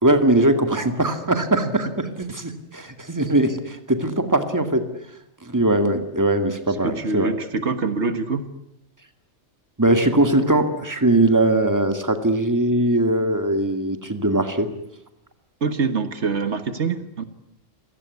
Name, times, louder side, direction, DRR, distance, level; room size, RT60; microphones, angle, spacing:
voice 1, 0.0-4.9 5.4-7.3 9.8-14.7, right 1 dB, 15° right, 7 dB, 2.1 m, -20 dB
voice 2, 6.8-8.4 15.6-17.2, right 4 dB, 70° right, 10 dB, 1.8 m, -24 dB
28.0 x 18.0 x 9.6 m, 0.76 s
omnidirectional pair, 1.2 m